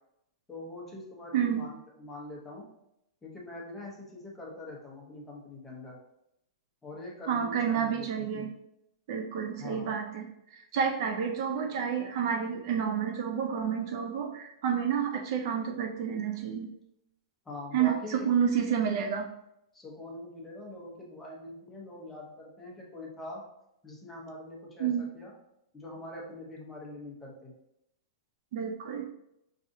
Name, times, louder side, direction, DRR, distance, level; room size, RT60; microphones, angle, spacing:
voice 1, 0.5-2.6 3.2-6.0 6.8-8.5 9.6-9.9 17.4-18.3 19.7-23.4 23.8-25.3 25.7-27.5, left 2 dB, 10° left, -3 dB, 0.8 m, -43 dB
voice 2, 1.3-1.7 7.3-8.5 9.1-16.7 17.7-19.3 24.8-25.1 28.5-29.0, right 7 dB, 50° right, 4 dB, 0.4 m, -30 dB
4.8 x 2.7 x 2.6 m, 0.81 s
hypercardioid pair, 155°, 3 cm